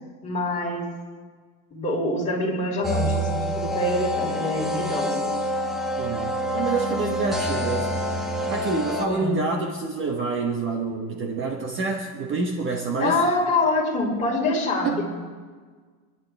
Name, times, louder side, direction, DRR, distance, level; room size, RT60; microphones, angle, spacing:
voice 1, 0.2-0.9 1.7-5.3 9.1-9.4 13.0-15.0, left 2 dB, 15° left, -5 dB, 5.2 m, -25 dB
sound 1, 2.8-9.1, equal, ahead, 1.6 m, -27 dB
voice 2, 6.0-7.9 8.5-13.2 14.8-15.0, right 4 dB, 30° right, 2 dB, 1.4 m, -27 dB
28.0 x 11.0 x 3.5 m, 1.5 s
supercardioid pair, 140°, 43 cm